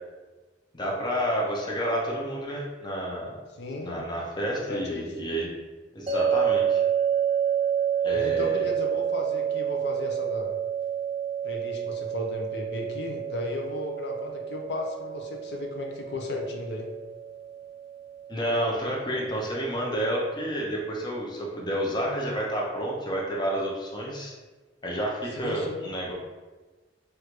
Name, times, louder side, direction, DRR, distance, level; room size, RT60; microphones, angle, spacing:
voice 1, 0.7-3.4 3.8-5.5 5.9-6.8 8.0-8.6 18.3-24.3 24.8-26.1, equal, 25° left, -2 dB, 0.6 m, -30 dB
voice 2, 3.5-4.0 4.5-5.1 8.1-10.5 11.4-16.9 25.4-25.8, left 2 dB, 65° left, 2 dB, 0.5 m, -35 dB
sound 1, 6.1-19.2, right 9 dB, 35° right, 0.4 m, -29 dB
3.2 x 2.4 x 2.9 m, 1.3 s
head